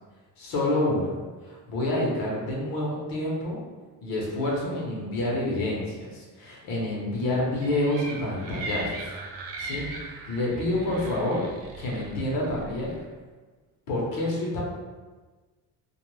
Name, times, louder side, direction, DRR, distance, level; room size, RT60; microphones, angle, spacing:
voice 1, 0.4-1.2 1.4-3.6 4.0-9.2 9.6-11.4 11.8-12.9 13.9-14.6, left 1 dB, 80° left, -3 dB, 0.9 m, -28 dB
sound 1, 7.6-13.0, right 2 dB, 75° right, 0.6 m, -39 dB
2.4 x 2.1 x 3.1 m, 1.3 s
cardioid pair, 110°, 34 cm